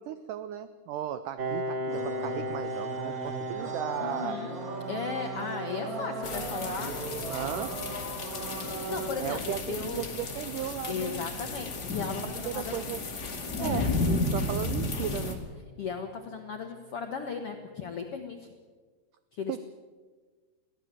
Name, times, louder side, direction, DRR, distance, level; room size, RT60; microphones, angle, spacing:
voice 1, 0.0-4.4 7.3-7.7 9.2-11.2 12.4-13.0 13.6-15.4 19.5-19.6, right 11 dB, 85° right, 12 dB, 1.8 m, -36 dB
Piano, 1.4-16.7, right 1 dB, 45° right, 1.5 m, -40 dB
sound 1, 1.9-9.1, right 2 dB, 30° right, 1.8 m, -39 dB
voice 2, 4.0-4.6 4.9-6.9 8.6-10.0 10.9-12.8 13.6-13.9 15.8-18.5 19.3-19.6, left 5 dB, 70° left, 4 dB, 1.3 m, -36 dB
sound 2, 6.2-15.3, left 2 dB, 30° left, 2.1 m, -33 dB
22.5 x 16.0 x 7.6 m, 1.4 s
omnidirectional pair, 4.6 m